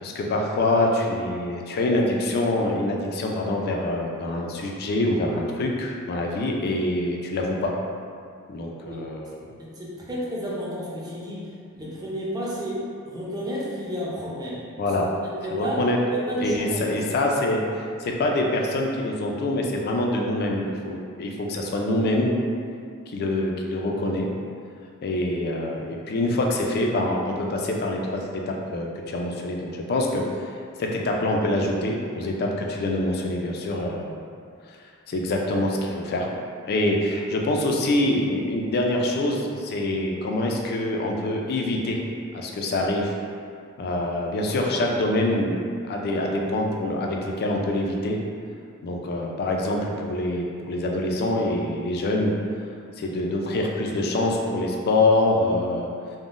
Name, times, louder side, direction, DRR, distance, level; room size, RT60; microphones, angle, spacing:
voice 1, 0.0-7.7 8.5-9.4 14.8-15.2 15.5-16.0 16.4-17.6 18.0-22.4 23.1-24.3 25.0-34.2 34.7-34.8 35.1-36.3 36.6-42.0 42.3-43.1 43.8-48.2 48.8-52.4 53.0-55.9, left 1 dB, 45° left, 0 dB, 0.3 m, -25 dB
voice 2, 9.6-14.6 15.1-15.8 16.1-17.0, equal, 20° right, -6 dB, 0.5 m, -32 dB
3.5 x 2.0 x 2.5 m, 2.3 s
head